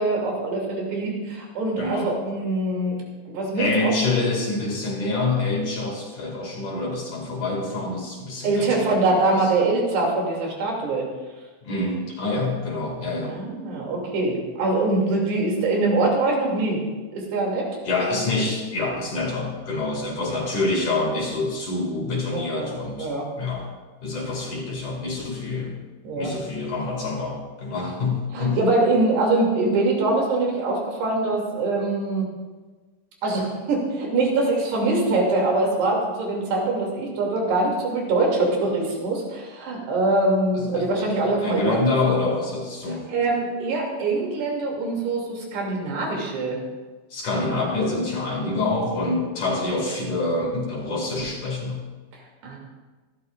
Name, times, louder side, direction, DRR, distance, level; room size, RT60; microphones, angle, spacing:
voice 1, 0.0-3.0 3.3-3.9 8.4-11.1 13.2-16.8 17.1-17.7 22.3-23.3 26.0-26.3 28.3-32.3 33.2-41.8 43.1-46.6 52.4-52.6, right 2 dB, 70° right, -1 dB, 4.8 m, -23 dB
voice 2, 1.8-2.1 3.6-8.9 11.6-13.4 17.9-23.1 23.4-23.7 24.0-25.8 26.2-28.6 40.5-41.1 41.4-43.1 47.1-51.8, left 2 dB, 50° left, -1 dB, 3.4 m, -26 dB
26.0 x 12.5 x 2.5 m, 1.3 s
omnidirectional pair, 4.9 m